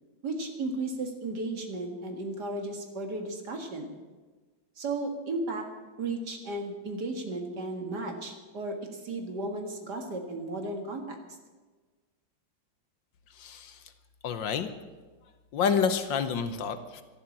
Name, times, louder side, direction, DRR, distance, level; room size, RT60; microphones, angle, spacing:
voice 1, 0.2-3.9 4.8-5.7 6.0-11.2, right 2 dB, 55° right, 4 dB, 2.3 m, -34 dB
voice 2, 13.3-13.8 14.2-14.7 15.5-17.0, left 6 dB, 65° left, 10 dB, 1.5 m, -28 dB
12.5 x 11.5 x 8.6 m, 1.3 s
omnidirectional pair, 2.2 m